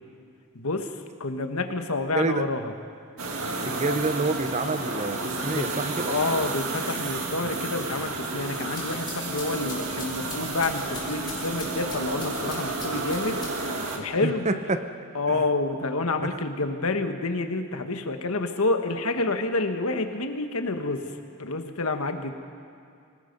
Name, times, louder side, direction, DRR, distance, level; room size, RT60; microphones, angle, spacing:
voice 1, 0.5-2.7 5.5-5.7 6.0-14.5 15.1-22.3, left 3 dB, 85° left, 6 dB, 1.4 m, -28 dB
voice 2, 2.1-2.5 3.7-6.2 14.2-14.9 15.3-15.4 16.2-16.4, right 3 dB, 30° right, 9 dB, 0.8 m, -28 dB
sound 1, 3.2-14.0, right 3 dB, 80° right, 1.9 m, -31 dB
sound 2, 8.8-13.8, left 4 dB, 20° left, 5.9 m, -42 dB
26.5 x 19.0 x 5.4 m, 2.3 s
head